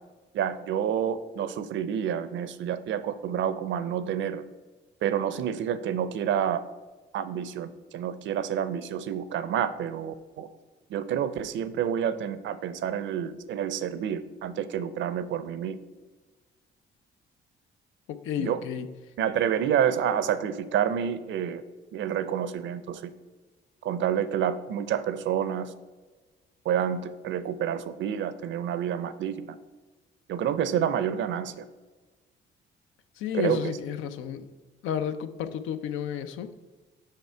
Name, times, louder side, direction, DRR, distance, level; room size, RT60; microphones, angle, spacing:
voice 1, 0.3-4.4 5.0-6.6 7.1-10.5 10.9-15.8 18.4-18.6 19.2-21.6 21.9-23.1 23.8-25.7 26.7-29.5 30.3-31.7 33.3-33.7, right 9 dB, 70° right, 0.5 m, -28 dB
voice 2, 18.1-18.9 33.2-34.5 34.8-36.5, left 8 dB, 85° left, 0.5 m, -32 dB
5.7 x 5.4 x 4.4 m
cardioid pair, 90°, 20 cm